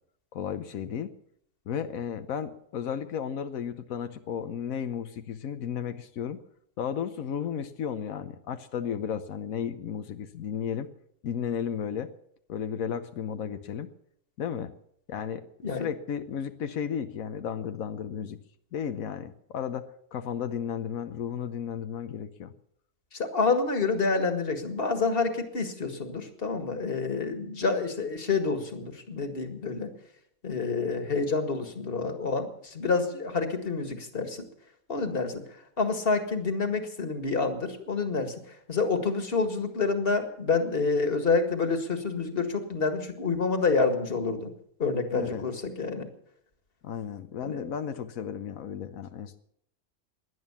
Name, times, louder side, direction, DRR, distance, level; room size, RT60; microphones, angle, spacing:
voice 1, 0.3-1.1 1.7-6.4 6.8-10.9 11.2-12.1 12.5-13.9 14.4-14.7 15.1-15.5 15.7-18.4 18.7-22.5 45.1-45.4 46.8-49.4, left 8 dB, 90° left, 9 dB, 1.3 m, -34 dB
voice 2, 23.1-29.9 30.4-34.5 34.9-35.4 35.8-44.5 44.8-46.1 47.4-47.7, left 4 dB, 45° left, 7 dB, 2.0 m, -28 dB
18.0 x 11.0 x 7.1 m, 0.69 s
omnidirectional pair, 1.4 m